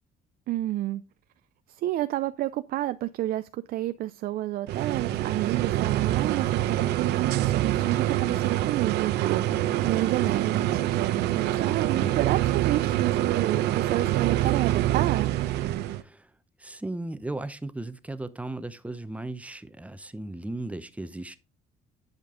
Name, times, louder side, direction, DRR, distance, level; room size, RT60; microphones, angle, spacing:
voice 1, 0.5-1.0 1.7-15.4, right 14 dB, 60° right, 0.4 m, -30 dB
sound 1, 4.7-16.0, right 14 dB, 80° right, 0.7 m, -26 dB
voice 2, 12.0-12.3 16.0-16.3 16.6-21.4, right 2 dB, 10° right, 0.7 m, -36 dB
10.5 x 5.2 x 3.8 m
cardioid pair, 110°, 17 cm